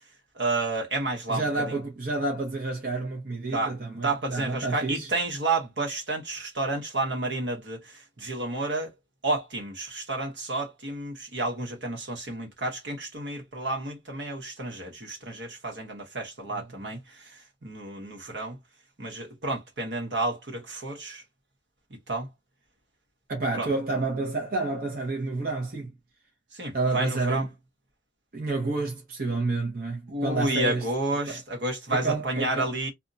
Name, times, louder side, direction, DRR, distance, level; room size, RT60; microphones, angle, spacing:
voice 1, 0.4-1.8 3.5-3.7 4.0-8.9 9.2-17.3 17.6-18.6 19.0-21.2 22.1-22.3 23.5-23.7 26.5-27.5 30.1-32.9, right 2 dB, 75° right, 1.1 m, -30 dB
voice 2, 1.3-5.1 16.5-16.6 23.3-25.9 26.7-27.5 28.3-30.9 31.3-31.4 31.9-32.7, right 3 dB, 50° right, 0.8 m, -29 dB
2.6 x 2.2 x 2.6 m
head